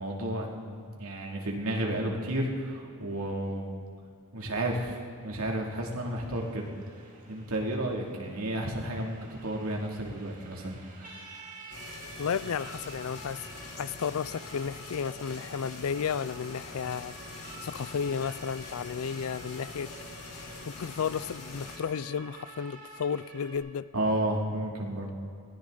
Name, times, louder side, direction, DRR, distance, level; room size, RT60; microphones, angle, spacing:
voice 1, 0.0-3.7 4.3-6.7 7.3-10.7 11.0-11.6 23.9-25.1, right 1 dB, 75° right, -1 dB, 2.6 m, -32 dB
Siren, 5.9-23.6, right 3 dB, 35° right, 2.3 m, -49 dB
sound 1, 11.7-21.8, left 3 dB, 90° left, 2.5 m, -44 dB
voice 2, 12.2-13.5 13.8-17.1 17.6-20.0 20.6-23.9, left 6 dB, 70° left, 18 dB, 0.4 m, -33 dB
21.0 x 16.5 x 3.9 m, 2.4 s
head